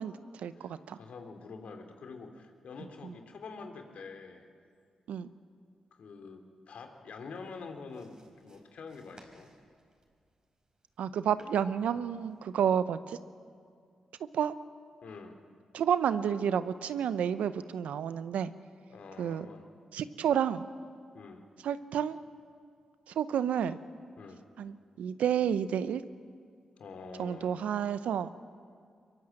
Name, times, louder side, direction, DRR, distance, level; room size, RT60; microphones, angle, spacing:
voice 1, 0.0-1.0 3.0-3.1 5.1-5.3 11.0-13.2 14.2-14.5 15.7-18.5 19.2-19.5 19.9-20.7 21.6-22.2 23.1-23.8 24.6-26.0 27.2-28.3, right 8 dB, 80° right, 13 dB, 0.8 m, -30 dB
voice 2, 0.6-4.4 6.0-8.2 8.4-9.5 15.0-15.4 18.9-19.7 21.1-21.4 24.2-24.4 26.8-27.5, left 4 dB, 70° left, 5 dB, 2.7 m, -46 dB
sound 1, 7.4-12.6, right 1 dB, 35° right, 4.8 m, -60 dB
23.5 x 21.5 x 7.7 m, 2.2 s
supercardioid pair, 45°, 2 cm